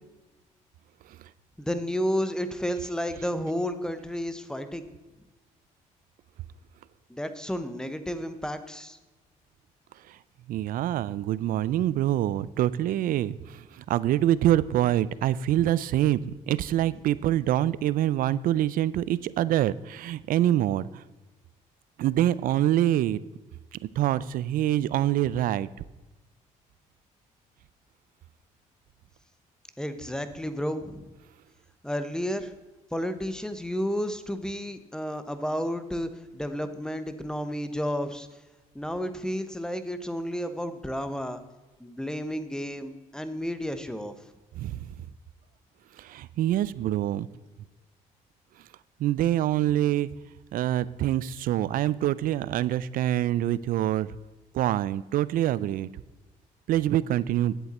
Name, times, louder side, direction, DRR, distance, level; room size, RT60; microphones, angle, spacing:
voice 1, 1.6-4.9 7.1-9.0 29.8-31.1 31.8-32.5 32.9-38.3 38.7-41.4 41.8-44.1, equal, 5° left, 10 dB, 0.9 m, -31 dB
voice 2, 10.5-21.0 22.0-23.2 24.0-25.7 44.6-44.8 46.0-47.3 49.0-50.1 50.5-54.2 54.5-55.9 56.7-57.5, right 13 dB, 70° right, 19 dB, 0.4 m, -25 dB
10.0 x 7.9 x 4.2 m, 1.1 s
cardioid pair, 85°, 15 cm